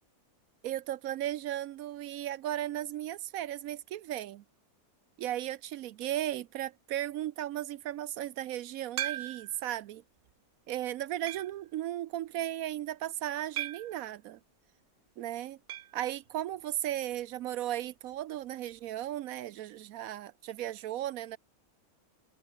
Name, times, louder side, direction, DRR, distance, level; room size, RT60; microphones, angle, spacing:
voice 1, 0.6-4.4 5.2-10.0 10.7-14.4 15.2-15.6 15.9-21.4, right 12 dB, 75° right, 1.0 m, -36 dB
sound 1, 9.0-9.7 10.3-10.4 11.3-11.7 13.6-14.0 15.7-16.0 16.3-16.4 16.6-16.7 18.7-18.8, right 12 dB, 90° right, 0.5 m, -37 dB
omnidirectional pair, 1.6 m